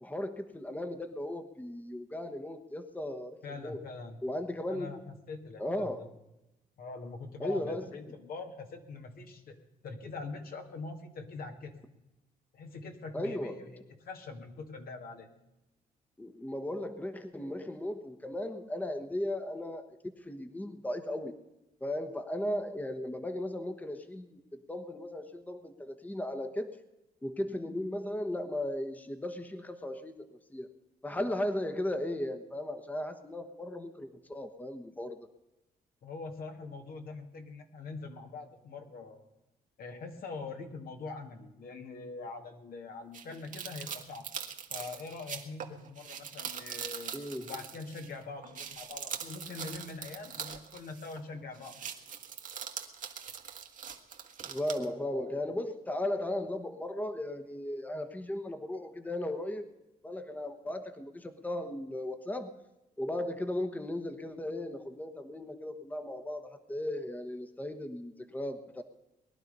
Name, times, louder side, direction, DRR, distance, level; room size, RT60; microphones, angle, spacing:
voice 1, 0.0-3.8 4.2-5.1 5.6-6.1 7.4-7.9 13.1-13.8 16.2-19.9 20.2-21.3 21.8-26.8 27.2-30.7 31.0-35.3 47.1-47.5 54.4-59.7 60.0-62.6 63.0-68.8, left 1 dB, 10° left, 8 dB, 1.2 m, -36 dB
voice 2, 3.4-4.2 4.7-5.9 6.8-9.6 9.8-11.7 12.5-15.3 36.0-39.3 39.8-44.3 44.7-51.8, left 3 dB, 70° left, 4 dB, 2.2 m, -43 dB
sound 1, 43.1-48.1 48.4-51.3 51.5-54.8, right 7 dB, 55° right, 1.5 m, -42 dB
20.5 x 11.5 x 5.5 m, 0.96 s
cardioid pair, 95°, 16 cm